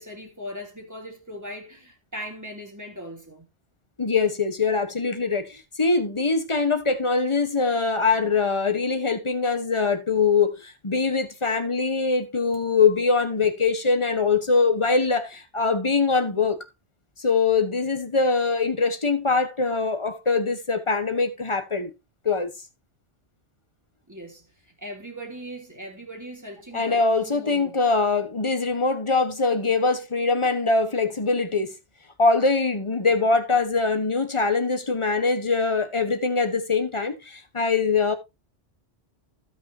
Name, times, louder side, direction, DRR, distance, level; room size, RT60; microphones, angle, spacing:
voice 1, 0.0-3.5 24.1-27.8, equal, 15° right, 2.9 m, -39 dB
voice 2, 4.0-16.6 17.2-21.9 22.2-22.5 26.7-31.8 32.2-38.2, left 4 dB, 25° left, 1.3 m, -23 dB
16.0 x 6.0 x 2.8 m
omnidirectional pair, 1.2 m